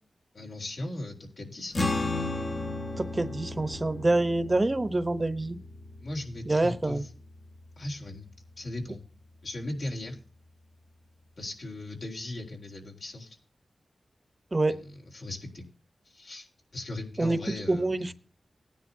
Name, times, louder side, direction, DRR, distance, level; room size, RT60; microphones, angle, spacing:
voice 1, 0.3-1.8 6.0-7.1 7.8-8.3 8.6-9.0 9.4-10.2 11.4-13.4 14.7-15.7 16.1-16.5 16.7-18.1, left 1 dB, 70° left, 0 dB, 3.8 m, -38 dB
sound 1, 1.7-8.4, left 2 dB, 35° left, 1.2 m, -35 dB
voice 2, 3.0-5.6 6.5-7.0 14.5-14.7 17.2-17.4 17.7-18.1, right 2 dB, 30° right, 12 dB, 0.9 m, -26 dB
18.5 x 10.0 x 2.7 m, 0.39 s
wide cardioid pair, 85°, 0 cm